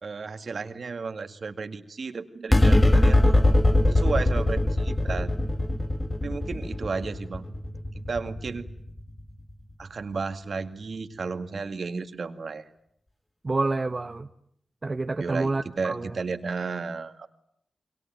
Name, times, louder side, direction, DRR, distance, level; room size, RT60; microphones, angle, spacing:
voice 1, 0.0-3.3 3.9-5.3 6.2-7.5 8.1-8.7 9.8-12.6 15.2-15.5 15.8-17.3, right 4 dB, 70° right, 9 dB, 2.1 m, -33 dB
sound 1, 2.5-9.2, left 1 dB, 20° left, 1.9 m, -22 dB
voice 2, 13.4-14.3 14.8-16.1, right 3 dB, 40° right, 7 dB, 1.0 m, -28 dB
28.0 x 22.5 x 9.2 m, 0.71 s
cardioid pair, 55°, 0 cm